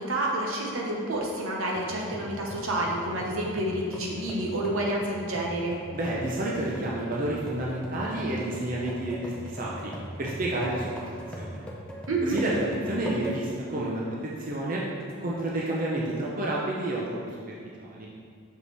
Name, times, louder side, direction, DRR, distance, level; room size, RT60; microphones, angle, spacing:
voice 1, 0.0-5.8 12.1-12.4, right 1 dB, 75° right, -2 dB, 1.0 m, -29 dB
sound 1, 1.7-13.7 14.1-14.2 15.0-15.6, equal, 5° left, 0.6 m, -41 dB
voice 2, 5.9-9.9 10.2-11.1 11.4-11.7 12.2-14.8 15.2-17.2 17.8-18.1, right 1 dB, 40° right, -4 dB, 0.6 m, -30 dB
6.2 x 5.0 x 3.4 m, 2.1 s
head